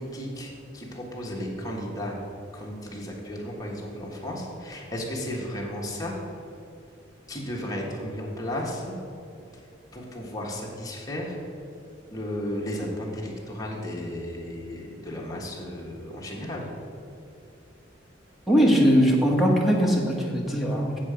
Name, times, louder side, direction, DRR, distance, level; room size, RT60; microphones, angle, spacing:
voice 1, 0.0-2.2 2.5-6.2 7.3-8.9 9.9-11.3 12.1-16.7, left 1 dB, 20° left, -3 dB, 1.5 m, -34 dB
voice 2, 18.5-21.0, equal, ahead, -2 dB, 1.3 m, -20 dB
8.0 x 7.5 x 5.0 m, 2.7 s
head